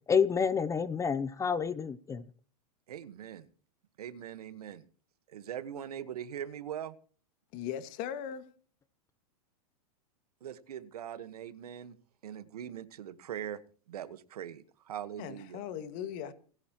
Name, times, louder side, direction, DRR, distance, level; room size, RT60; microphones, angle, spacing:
voice 1, 0.1-2.2, left 6 dB, 15° left, 0.7 m, -29 dB
voice 2, 2.9-3.5 4.0-4.8 5.3-6.9 10.4-12.0 12.2-13.6 13.9-15.6, right 10 dB, 90° right, 1.5 m, -41 dB
voice 3, 7.5-8.6 15.2-16.3, left 9 dB, 45° left, 2.0 m, -39 dB
29.0 x 9.7 x 3.0 m
supercardioid pair, 130°, 19 cm